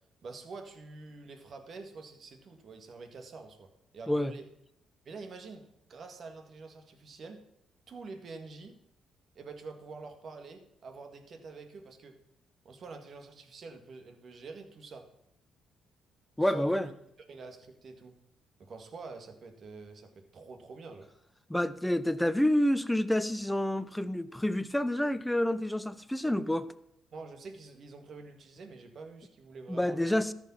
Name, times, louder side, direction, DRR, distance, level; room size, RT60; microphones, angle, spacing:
voice 1, 0.2-4.5 5.1-7.4 7.9-8.8 9.4-12.2 12.6-15.1 16.4-16.9 17.3-18.2 18.6-21.1 27.1-30.3, right 4 dB, 55° right, 5 dB, 1.9 m, -47 dB
voice 2, 16.4-16.9 21.5-26.7 29.7-30.3, left 1 dB, 5° left, 13 dB, 0.7 m, -28 dB
13.5 x 5.3 x 7.1 m, 0.80 s
cardioid pair, 90°, 0 cm